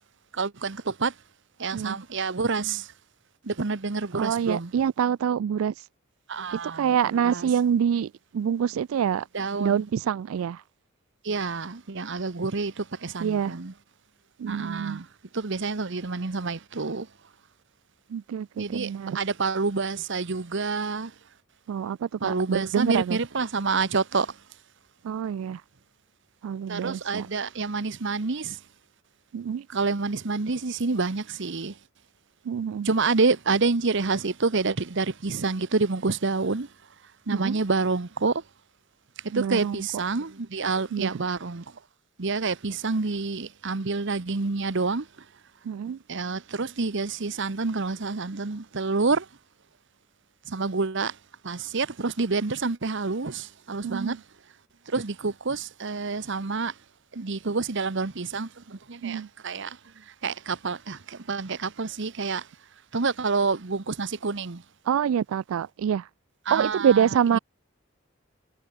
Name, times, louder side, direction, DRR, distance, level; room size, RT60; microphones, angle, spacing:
voice 1, 0.3-1.1 1.6-2.9 3.4-4.7 6.3-7.0 7.2-7.5 9.3-9.8 11.2-13.7 14.4-15.1 15.3-17.1 18.6-21.1 22.2-24.4 26.7-28.6 29.7-31.8 32.8-36.7 37.3-38.4 39.2-41.6 42.2-45.1 46.1-49.3 50.5-51.2 51.4-54.2 54.9-56.7 57.1-62.5 62.9-64.6 66.5-67.4, right 4 dB, 60° right, 1.0 m, -28 dB
voice 2, 4.1-5.9 6.5-9.3 9.6-10.6 13.2-13.6 14.4-15.0 18.1-19.2 21.7-23.2 25.0-25.6 26.4-27.3 29.3-29.7 32.5-32.9 37.3-37.6 39.3-39.9 40.9-41.2 45.6-46.0 53.8-54.2 59.0-59.3 64.9-66.1 66.5-67.4, right 8 dB, 85° right, 0.3 m, -26 dB
head